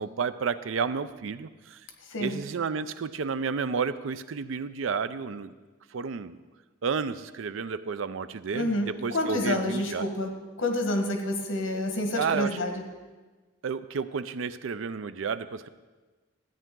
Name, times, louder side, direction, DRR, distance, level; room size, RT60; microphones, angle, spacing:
voice 1, 0.0-1.8 2.2-5.5 5.9-6.4 6.8-10.1 12.2-12.6 13.6-15.7, right 5 dB, 80° right, 14 dB, 0.5 m, -31 dB
voice 2, 2.1-2.4 8.5-10.3 10.6-12.8, left 1 dB, 85° left, 4 dB, 1.5 m, -28 dB
13.5 x 9.0 x 3.8 m, 1.3 s
head